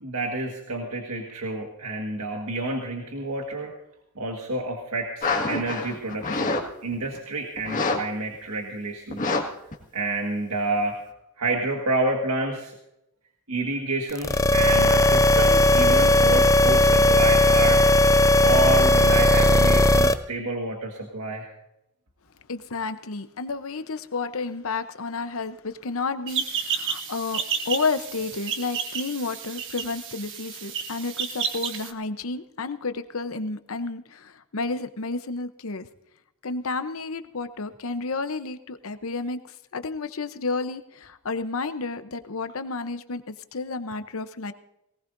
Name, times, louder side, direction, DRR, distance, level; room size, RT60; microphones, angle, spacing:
voice 1, 0.0-3.7 4.2-6.6 6.8-9.2 9.9-11.0 11.4-12.7 13.5-17.8 18.4-21.5, right 2 dB, 85° right, 1 dB, 1.7 m, -29 dB
sound 1, 5.2-6.6 6.9-7.2 7.6-8.0 8.3-8.4 9.1-9.4 9.7-9.8, left 3 dB, 35° left, 1.9 m, -26 dB
sound 2, 14.1-20.1, left 1 dB, 15° left, 0.4 m, -17 dB
voice 2, 22.5-35.9 36.4-39.4 39.7-44.5, left 3 dB, 65° left, 11 dB, 0.8 m, -31 dB
sound 3, 26.3-31.9, right 7 dB, 60° right, 1.2 m, -31 dB
19.0 x 18.5 x 2.6 m, 0.86 s
head